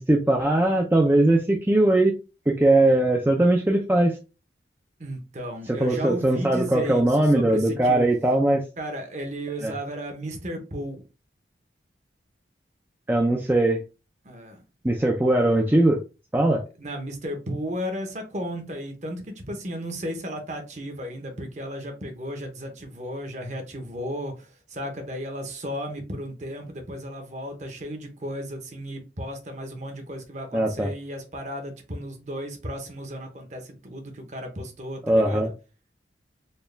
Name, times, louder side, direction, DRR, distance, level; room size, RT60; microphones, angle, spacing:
voice 1, 0.0-2.1 2.5-4.2 5.8-8.6 9.6-9.7 13.1-13.8 14.8-16.0 16.3-16.6 30.5-30.9 35.1-35.5, right 1 dB, 10° right, 0.4 m, -20 dB
voice 2, 5.0-8.0 8.8-11.0 14.2-14.6 16.8-35.5, equal, 40° right, 0.9 m, -34 dB
4.3 x 2.3 x 3.3 m
head